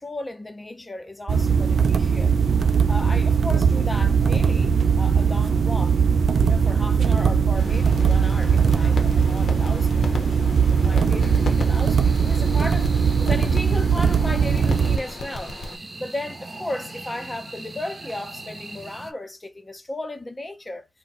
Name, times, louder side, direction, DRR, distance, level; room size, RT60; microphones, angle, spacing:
voice 1, 0.0-2.4 2.9-6.0 6.4-10.3 10.7-20.9, left 1 dB, 20° left, 0.6 m, -35 dB
sound 1, 1.3-15.0, right 6 dB, 80° right, 0.4 m, -20 dB
sound 2, 7.6-15.8, left 3 dB, 80° left, 0.8 m, -36 dB
sound 3, 11.2-19.1, right 2 dB, 30° right, 0.7 m, -40 dB
2.6 x 2.1 x 4.0 m
wide cardioid pair, 175°, 0 cm